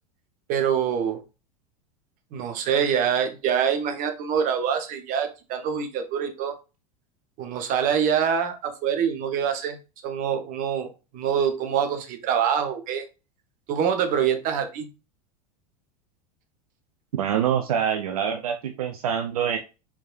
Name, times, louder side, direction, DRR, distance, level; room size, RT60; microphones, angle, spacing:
voice 1, 0.5-1.2 2.3-6.5 7.4-9.8 10.0-13.0 13.7-14.9, right 8 dB, 45° right, 1.2 m, -25 dB
voice 2, 17.1-19.6, right 8 dB, 70° right, 0.7 m, -25 dB
4.5 x 4.4 x 2.5 m
figure-of-eight pair, 85°, 20 cm